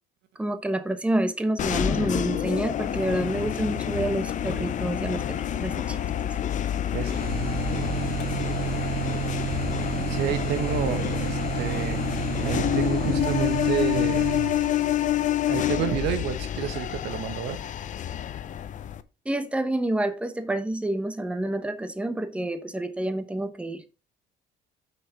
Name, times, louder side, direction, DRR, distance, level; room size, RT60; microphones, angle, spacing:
voice 1, 0.4-6.3 19.2-23.8, right 1 dB, 5° right, 1.0 m, -28 dB
sound 1, 1.6-19.0, left 11 dB, 50° left, 0.7 m, -28 dB
Walk footsteps, 4.3-11.2, left 6 dB, 85° left, 2.6 m, -43 dB
voice 2, 6.6-7.1 10.1-12.1 12.4-14.3 15.4-17.6, right 9 dB, 85° right, 1.3 m, -30 dB
sound 2, 7.0-15.0, right 13 dB, 60° right, 0.4 m, -31 dB
6.5 x 5.8 x 4.7 m
cardioid pair, 110°, 17 cm